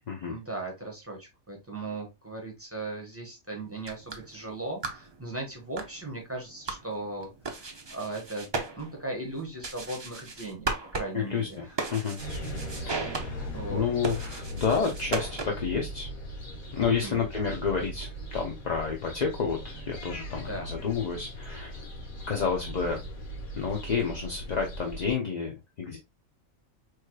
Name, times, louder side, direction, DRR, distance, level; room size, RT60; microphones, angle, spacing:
voice 1, 0.3-7.3 7.9-8.5 8.7-11.8 13.2-13.9 16.8-17.2 20.3-20.7, right 2 dB, 10° right, 0 dB, 1.0 m, -38 dB
sound 1, 3.7-15.8, right 3 dB, 40° right, 0.4 m, -37 dB
voice 2, 11.1-11.6 11.9-12.2 12.8-16.1 16.7-21.8 22.3-23.0 23.6-26.0, left 6 dB, 45° left, 1 dB, 0.5 m, -30 dB
sound 2, 12.2-25.1, equal, 85° left, 1.7 m, -39 dB
4.6 x 3.1 x 2.2 m, 0.23 s
omnidirectional pair, 1.4 m